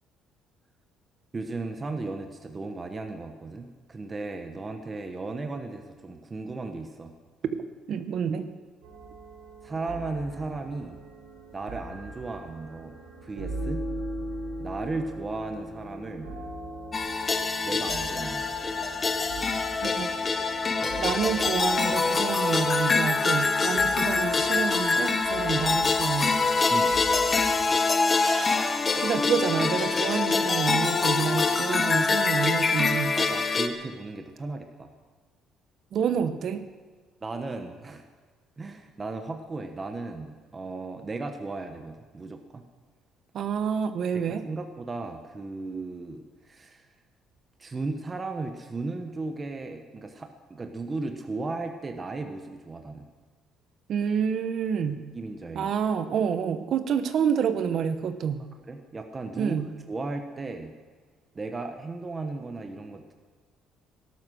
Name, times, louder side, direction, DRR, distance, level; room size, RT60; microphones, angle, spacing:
voice 1, 1.3-7.1 9.6-11.0 11.5-13.0 13.2-13.8 14.6-16.3 17.6-18.6 20.8-21.1 26.7-27.0 33.2-34.9 37.2-38.0 38.6-42.6 44.1-46.8 47.6-53.1 55.1-55.7 58.7-59.6 59.9-60.7 61.3-63.1, right 3 dB, 20° right, 5 dB, 1.1 m, -36 dB
voice 2, 7.9-8.5 19.8-20.2 21.0-26.4 28.2-28.7 28.9-33.2 35.9-36.6 43.3-44.4 53.9-55.0 55.5-58.4 59.4-59.7, right 7 dB, 50° right, 9 dB, 1.2 m, -28 dB
sound 1, 8.8-27.8, right 1 dB, 90° right, 5.2 m, -40 dB
sound 2, 16.9-33.7, left 4 dB, 20° left, 0.9 m, -25 dB
18.0 x 12.5 x 6.4 m, 1.4 s
cardioid pair, 160°, 0 cm